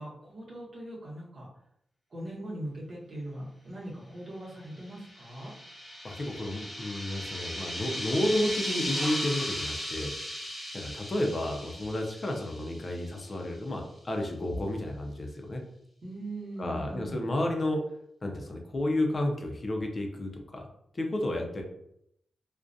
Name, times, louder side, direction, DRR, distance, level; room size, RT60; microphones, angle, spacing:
voice 1, 0.0-1.5 2.1-5.5 16.0-17.2, right 1 dB, 55° right, -5 dB, 0.9 m, -40 dB
sound 1, 4.9-13.2, equal, 5° left, 1.0 m, -37 dB
voice 2, 6.0-10.1 10.7-15.6 16.6-17.8 18.2-20.7 20.9-21.6, left 1 dB, 40° left, 2 dB, 0.4 m, -31 dB
2.3 x 2.1 x 2.5 m, 0.74 s
wide cardioid pair, 100°, 0 cm